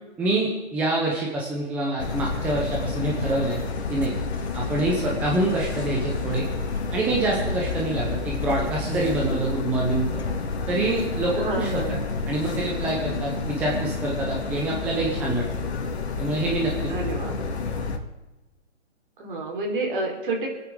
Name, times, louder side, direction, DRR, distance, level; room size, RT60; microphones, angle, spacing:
voice 1, 0.2-3.6 3.9-4.1 4.5-6.5 6.9-10.2 10.7-11.8 12.3-15.4 16.2-16.9, right 2 dB, 5° right, -2 dB, 0.7 m, -26 dB
sound 1, 2.0-18.0, left 4 dB, 65° left, 2.4 m, -29 dB
voice 2, 11.3-12.1 16.9-17.3 19.2-20.5, right 2 dB, 45° right, 0 dB, 4.3 m, -29 dB
27.5 x 9.3 x 3.8 m, 1.1 s
hypercardioid pair, 160°, 36 cm